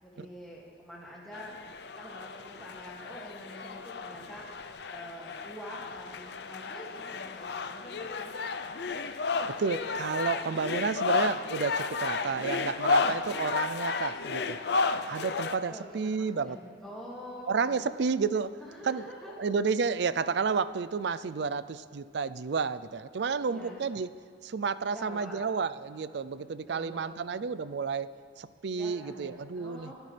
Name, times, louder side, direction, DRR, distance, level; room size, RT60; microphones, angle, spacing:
voice 1, 0.0-1.5 2.0-4.4 4.9-8.3 15.7-17.9 18.6-19.5 23.5-23.9 24.9-25.4 26.7-27.2 28.7-29.9, equal, ahead, -7 dB, 2.2 m, -46 dB
sound 1, 1.3-15.6, left 4 dB, 55° left, 0.5 m, -33 dB
voice 2, 9.5-14.6 15.1-16.6 17.5-18.6 18.8-19.0 19.4-24.1 24.4-29.9, right 5 dB, 60° right, 15 dB, 0.4 m, -31 dB
23.5 x 12.5 x 3.3 m, 2.1 s
head